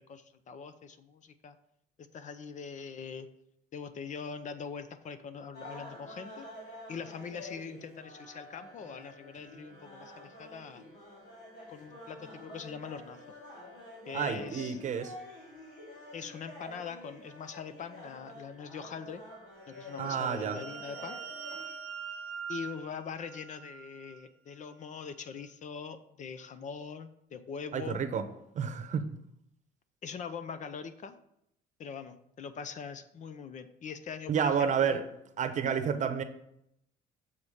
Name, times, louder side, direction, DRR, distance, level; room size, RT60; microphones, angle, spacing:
voice 1, 0.0-1.6 2.0-3.3 3.7-6.5 6.9-10.8 11.7-13.2 14.1-14.8 16.1-19.2 19.7-21.2 22.5-28.1 30.0-31.2 31.8-35.0, left 6 dB, 45° left, 11 dB, 0.7 m, -42 dB
sound 1, 5.5-21.7, left 1 dB, 80° left, 2.8 m, -49 dB
voice 2, 14.1-15.1 20.0-20.6 27.7-28.2 28.5-29.1 34.3-35.0 35.4-36.2, right 7 dB, 45° right, 10 dB, 0.8 m, -30 dB
sound 2, 19.7-24.2, right 6 dB, 5° left, 2.6 m, -43 dB
7.1 x 4.9 x 5.5 m, 0.77 s
cardioid pair, 110°, 17 cm